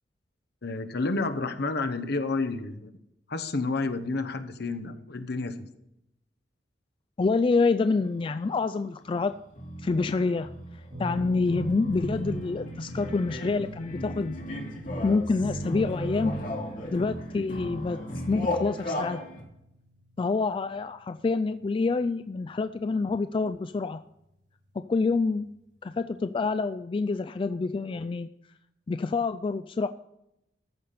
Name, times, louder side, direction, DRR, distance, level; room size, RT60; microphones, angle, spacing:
voice 1, 0.6-2.9 3.3-5.7, left 3 dB, 65° left, 8 dB, 0.9 m, -30 dB
voice 2, 7.2-9.4 9.8-10.5 11.0-14.4 15.0-16.4 16.9-18.0 18.3-19.2 20.2-24.0 24.8-25.5 25.8-28.3 28.9-29.9, left 4 dB, 30° left, 10 dB, 0.3 m, -27 dB
sound 1, 7.9-8.3 8.8-19.4, equal, 50° left, 2.7 m, -35 dB
sound 2, 10.9-23.1 23.4-23.6 25.3-25.4, equal, 80° right, 3.9 m, -46 dB
14.0 x 5.8 x 6.7 m, 0.84 s
head